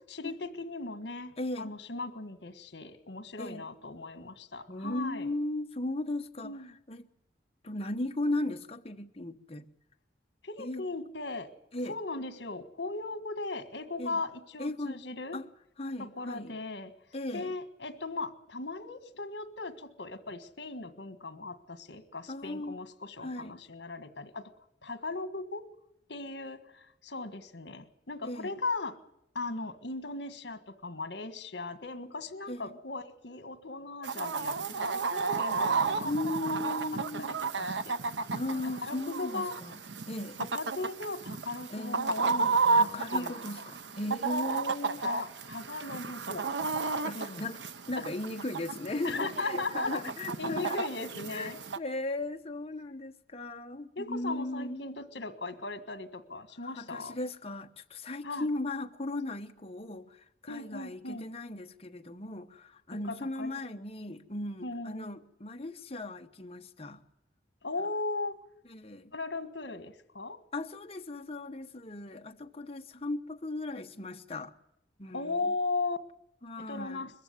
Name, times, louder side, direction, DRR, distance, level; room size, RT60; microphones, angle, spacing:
voice 1, 0.1-5.3 6.4-6.7 10.4-11.5 11.9-15.4 16.0-16.9 17.3-24.5 24.8-25.6 26.1-28.9 29.3-36.3 36.9-37.3 37.5-38.0 38.6-39.6 40.4-43.3 45.0-46.5 47.1-47.5 49.0-50.0 50.4-51.6 53.9-57.2 58.2-58.4 60.5-61.3 63.0-63.5 64.6-65.2 67.6-68.3 69.1-70.4 75.1-76.0 76.7-77.1, left 3 dB, 70° left, 1.6 m, -38 dB
voice 2, 1.4-1.7 3.4-3.7 4.7-7.1 7.6-9.7 10.6-10.8 11.7-12.0 14.0-14.2 14.6-15.0 15.3-15.5 15.8-16.6 17.1-17.5 22.3-22.8 23.2-23.6 28.2-28.6 32.5-32.7 36.0-37.4 38.3-39.8 40.1-40.4 41.7-42.1 42.7-45.0 46.9-47.6 47.9-50.9 51.3-54.9 56.6-67.0 68.7-69.1 70.5-74.5 75.0-75.5 76.4-77.1, left 2 dB, 35° left, 1.1 m, -37 dB
Chicken rooster, 34.0-51.8, right 4 dB, 80° right, 0.8 m, -32 dB
21.5 x 14.5 x 9.7 m
head